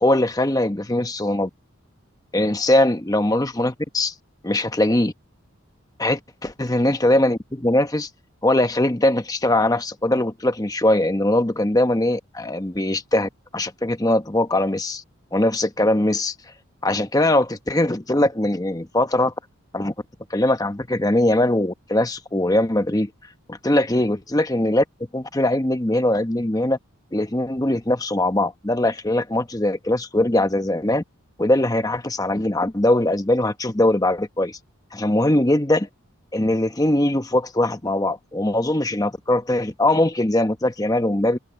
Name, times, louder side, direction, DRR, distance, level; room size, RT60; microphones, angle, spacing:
voice 1, 0.0-1.5 2.3-4.1 4.4-5.1 6.0-8.1 8.4-15.0 15.3-16.3 16.8-19.3 19.7-19.9 20.3-23.1 23.5-24.8 25.1-26.8 27.1-31.0 31.4-34.6 34.9-35.9 36.3-41.4, left 1 dB, 15° left, 1.0 m, -21 dB
head